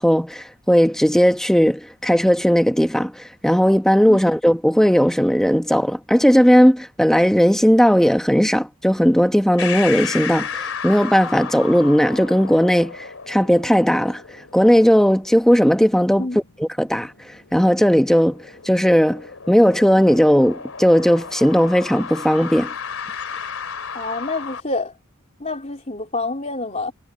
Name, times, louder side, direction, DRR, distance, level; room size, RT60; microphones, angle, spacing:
voice 1, 0.0-14.2 14.5-17.1 17.5-22.7, equal, ahead, 1.1 m, -17 dB
sound 1, 9.6-24.6, left 7 dB, 80° left, 3.0 m, -34 dB
voice 2, 23.9-24.9 25.4-26.9, left 2 dB, 30° left, 3.5 m, -27 dB
head